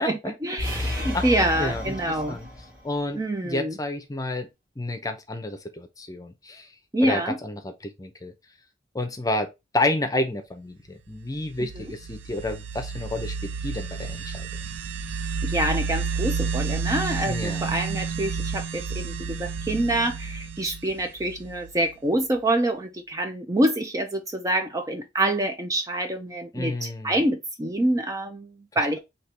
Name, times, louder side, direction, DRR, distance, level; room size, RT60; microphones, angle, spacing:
voice 1, 0.0-2.4 3.1-3.7 6.9-7.4 11.8-11.9 15.4-29.0, right 1 dB, 20° right, 0.5 m, -26 dB
sound 1, 0.6-2.8, left 1 dB, 50° right, 2.0 m, -31 dB
voice 2, 1.6-2.5 2.8-4.5 4.8-6.7 7.0-8.3 8.9-14.5 17.3-17.7 26.5-27.2, left 2 dB, 20° left, 0.7 m, -30 dB
sound 2, 11.4-21.9, right 5 dB, 90° right, 0.5 m, -31 dB
4.5 x 2.9 x 3.3 m
head